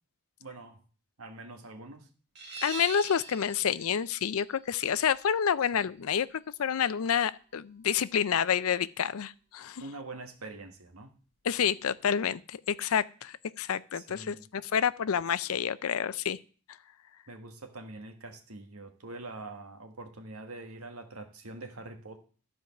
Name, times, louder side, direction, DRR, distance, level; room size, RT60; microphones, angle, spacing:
voice 1, 0.4-0.8 1.2-2.1 5.7-5.8 9.8-11.2 13.9-14.5 17.3-22.2, right 2 dB, 85° right, 6 dB, 1.5 m, -44 dB
sound 1, 2.4-7.8, right 4 dB, 50° right, 2.2 m, -46 dB
voice 2, 2.6-6.3 6.6-9.8 11.4-16.4, left 8 dB, 80° left, 17 dB, 0.5 m, -28 dB
13.0 x 4.7 x 5.8 m, 0.40 s
head